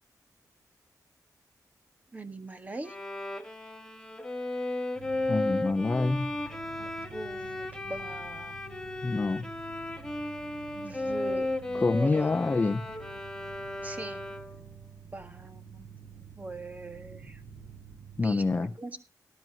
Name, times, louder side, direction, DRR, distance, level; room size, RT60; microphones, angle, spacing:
voice 1, 2.1-2.9 6.0-6.1 6.8-8.6 10.7-12.3 13.8-14.2 15.1-15.9 16.2-17.4 18.2-19.0, right 2 dB, 20° right, 1.6 m, -41 dB
Bowed string instrument, 2.8-14.7, left 2 dB, 10° left, 1.6 m, -35 dB
sound 1, 4.9-18.2, right 7 dB, 75° right, 5.0 m, -49 dB
voice 2, 5.3-6.3 9.0-9.4 11.7-12.8 18.2-18.7, left 3 dB, 25° left, 0.7 m, -26 dB
19.0 x 10.5 x 2.9 m
wide cardioid pair, 165°, 7 cm